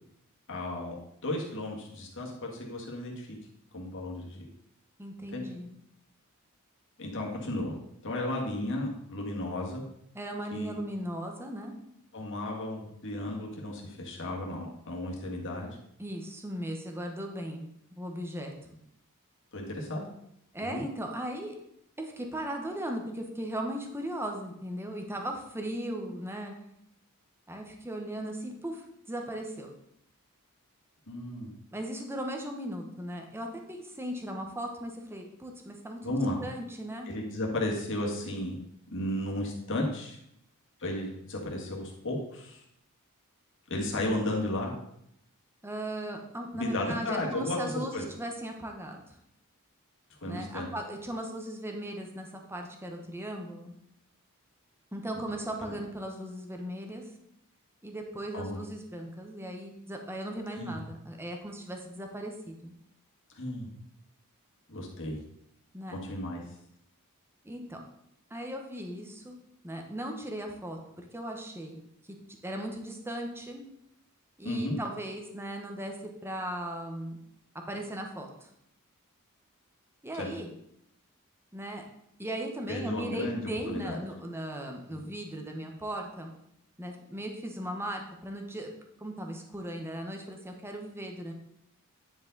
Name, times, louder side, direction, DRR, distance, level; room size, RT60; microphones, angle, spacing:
voice 1, 0.5-1.0 1.2-3.4 3.7-4.5 5.3-5.4 7.0-7.8 8.0-9.8 10.5-10.8 12.1-15.8 19.5-20.1 20.6-20.8 31.1-31.5 36.0-36.4 37.1-38.6 38.9-40.2 40.8-42.6 43.7-44.7 46.5-48.0 50.2-50.7 55.6-55.8 58.3-58.6 60.6-60.8 63.3-63.7 64.7-65.2 65.9-66.5 74.4-74.8 80.1-80.3 82.7-84.0 84.9-85.0, left 1 dB, 60° left, -1 dB, 1.8 m, -34 dB
voice 2, 5.0-5.7 10.1-11.8 16.0-17.7 18.0-18.7 20.5-21.5 22.0-26.5 27.5-29.7 31.7-37.1 45.6-49.1 50.2-53.7 54.9-57.0 57.8-62.7 65.7-66.0 67.4-67.8 68.3-69.4 69.6-71.8 72.4-73.6 74.4-77.2 77.7-78.5 80.0-80.5 81.5-81.8 82.2-86.3 86.8-88.7 89.0-91.3, right 1 dB, 10° right, 2 dB, 1.0 m, -37 dB
9.9 x 4.7 x 4.0 m, 0.76 s
head